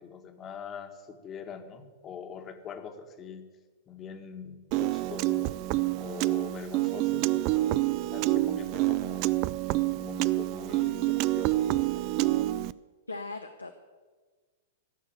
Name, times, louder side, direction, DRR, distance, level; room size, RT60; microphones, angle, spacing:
voice 1, 0.0-3.5 3.9-5.6 6.0-7.5 8.1-9.4 9.9-12.5, left 7 dB, 25° left, 6 dB, 1.7 m, -43 dB
Piano, 4.7-12.7, right 17 dB, 45° right, 0.4 m, -27 dB
voice 2, 13.1-13.7, left 3 dB, 90° left, 6 dB, 0.9 m, -38 dB
16.5 x 6.5 x 9.0 m, 1.4 s
figure-of-eight pair, 105°, 0 cm